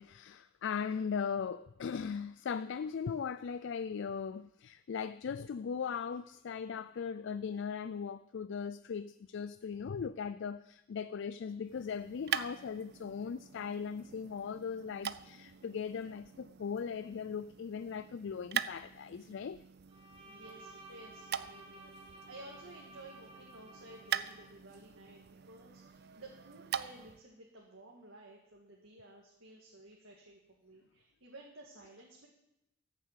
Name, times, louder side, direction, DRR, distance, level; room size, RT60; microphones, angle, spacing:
voice 1, 0.0-19.6, left 6 dB, 60° left, 0.4 m, -39 dB
sound 1, 11.6-27.2, right 9 dB, 50° right, 0.5 m, -43 dB
Bowed string instrument, 19.9-24.5, right 2 dB, 25° right, 1.5 m, -54 dB
voice 2, 20.2-32.3, right 2 dB, 65° right, 2.0 m, -54 dB
14.0 x 7.3 x 8.2 m
head